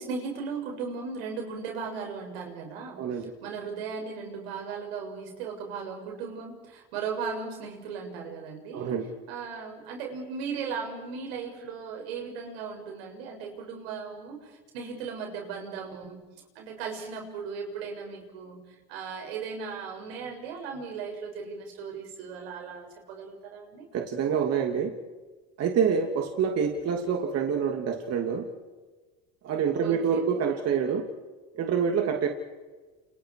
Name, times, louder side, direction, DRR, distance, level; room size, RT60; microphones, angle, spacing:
voice 1, 0.0-8.9 9.3-16.2 16.6-18.6 18.9-23.9 29.8-30.6, right 5 dB, 90° right, 1 dB, 7.0 m, -37 dB
voice 2, 3.0-3.3 8.7-9.1 23.9-24.9 25.6-28.5 29.4-31.1 31.5-32.3, right 7 dB, 55° right, 3 dB, 3.0 m, -26 dB
30.0 x 28.5 x 4.9 m, 1.3 s
supercardioid pair, 90°, 30 cm